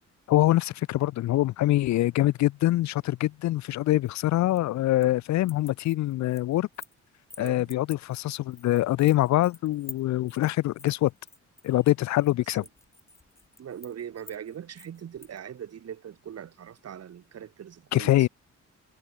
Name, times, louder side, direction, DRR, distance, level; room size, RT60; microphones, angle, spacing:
voice 1, 0.3-6.7 7.4-11.1 11.6-12.6 17.9-18.3, left 15 dB, 65° left, 0.5 m, -24 dB
sound 1, 4.0-5.2 5.4-7.0 7.3-15.4, left 2 dB, 10° left, 0.8 m, -49 dB
voice 2, 7.4-7.7 12.5-12.6 13.6-18.3, right 9 dB, 55° right, 2.4 m, -41 dB
cardioid pair, 90°, 30 cm